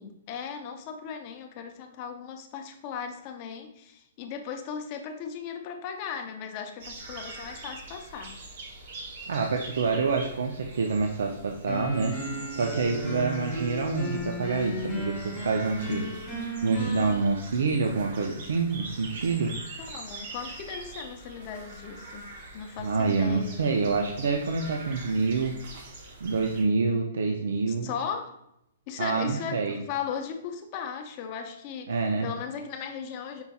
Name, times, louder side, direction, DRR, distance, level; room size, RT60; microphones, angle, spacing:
voice 1, 0.0-8.4 19.5-23.6 27.7-28.4 28.9-33.4, left 7 dB, 25° left, 5 dB, 0.5 m, -37 dB
sound 1, 6.8-26.6, right 2 dB, 40° right, 0.8 m, -44 dB
voice 2, 9.3-12.2 12.5-16.1 16.6-19.5 22.8-25.5 26.2-27.9 29.0-29.8 31.9-32.3, right 4 dB, 80° right, 3 dB, 0.5 m, -27 dB
sound 2, 11.7-17.2, equal, ahead, 1.7 m, -34 dB
5.4 x 4.2 x 2.3 m, 0.80 s
hypercardioid pair, 170°, 0 cm